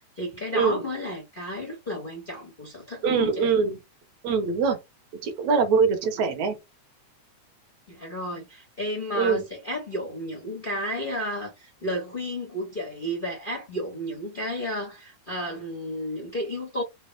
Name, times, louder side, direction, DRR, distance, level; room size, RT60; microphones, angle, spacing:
voice 1, 0.2-3.5 7.9-16.8, equal, 75° left, 0.4 m, -32 dB
voice 2, 3.0-3.8 4.2-4.8 5.2-6.6 9.2-9.4, right 5 dB, 70° right, 2.4 m, -23 dB
5.3 x 2.0 x 4.5 m
omnidirectional pair, 3.5 m